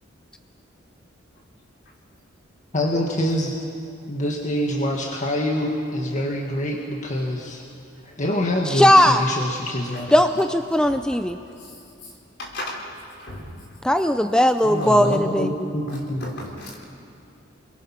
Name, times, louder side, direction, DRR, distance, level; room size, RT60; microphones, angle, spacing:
voice 1, 2.7-3.5 4.1-7.6 8.0-10.1 14.6-16.3, left 1 dB, 40° left, 0 dB, 1.7 m, -25 dB
voice 2, 8.7-9.4 10.1-11.4 13.8-15.7, left 1 dB, 5° left, 8 dB, 0.5 m, -18 dB
voice 3, 12.4-12.8 13.2-13.5 14.7-15.2 16.2-16.9, left 1 dB, 60° left, -2 dB, 4.3 m, -34 dB
28.5 x 22.0 x 5.8 m, 2.5 s
head